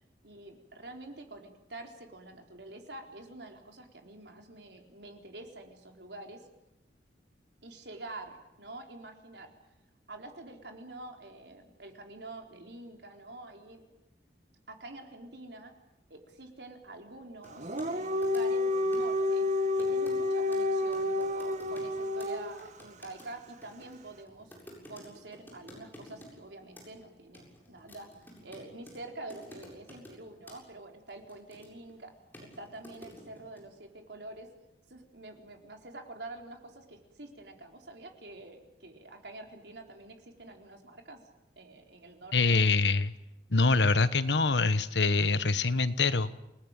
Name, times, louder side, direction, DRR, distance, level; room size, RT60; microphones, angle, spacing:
voice 1, 0.2-6.5 7.6-9.5 10.1-13.8 14.7-15.7 16.1-19.5 19.8-24.6 24.9-32.1 32.4-34.5 34.9-41.2 41.6-42.7, right 2 dB, 75° right, 3 dB, 4.1 m, -47 dB
sound 1, 17.4-17.9 18.2-18.6 18.9-19.1 19.8-20.2 20.5-20.6 20.9-21.9 22.2-22.3 22.6-26.3 26.8-27.0 27.3-29.0 29.3-30.2 30.5-30.6 31.1-31.9 32.3-33.6, left 1 dB, 10° left, 7.4 m, -51 dB
Dog, 17.5-22.7, left 2 dB, 40° right, 1.5 m, -29 dB
voice 2, 42.3-43.1 43.5-46.3, left 3 dB, 80° left, 13 dB, 1.3 m, -25 dB
28.5 x 19.5 x 9.0 m, 0.90 s
head